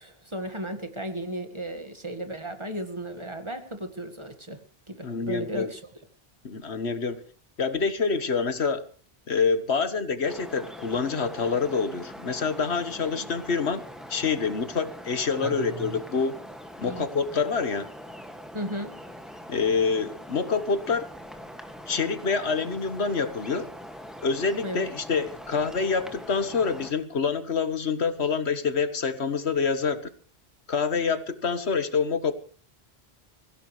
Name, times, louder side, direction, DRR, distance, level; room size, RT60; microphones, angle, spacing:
voice 1, 0.0-4.6 4.9-5.9 13.1-13.3 15.4-16.0 16.8-17.1 18.5-19.0 24.6-24.9, right 1 dB, 25° right, 7 dB, 1.9 m, -35 dB
voice 2, 5.0-5.7 6.4-7.2 7.6-8.8 9.3-13.8 14.1-16.4 16.8-17.9 19.5-21.1 21.9-23.7 24.2-30.1 30.7-32.3, left 5 dB, 85° left, 11 dB, 1.7 m, -26 dB
sound 1, 10.2-26.9, equal, ahead, 2.1 m, -43 dB
23.5 x 16.5 x 3.3 m, 0.41 s
omnidirectional pair, 1.1 m